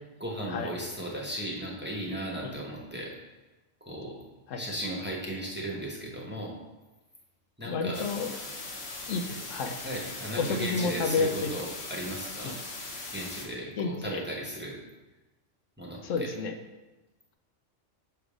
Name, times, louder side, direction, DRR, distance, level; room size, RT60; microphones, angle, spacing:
voice 1, 0.2-3.1 3.8-4.2 4.5-6.5 7.6-8.0 9.3-9.4 9.8-12.5 13.1-14.8 15.8-16.3, right 1 dB, 10° right, -3 dB, 0.9 m, -36 dB
voice 2, 7.7-8.4 9.1-9.2 9.5-9.8 10.4-11.7 12.4-12.6 13.8-14.2 16.0-16.5, left 4 dB, 90° left, 6 dB, 1.0 m, -30 dB
sound 1, 7.9-13.5, left 2 dB, 60° left, 1.3 m, -40 dB
6.4 x 3.4 x 4.9 m, 1.1 s
omnidirectional pair, 1.3 m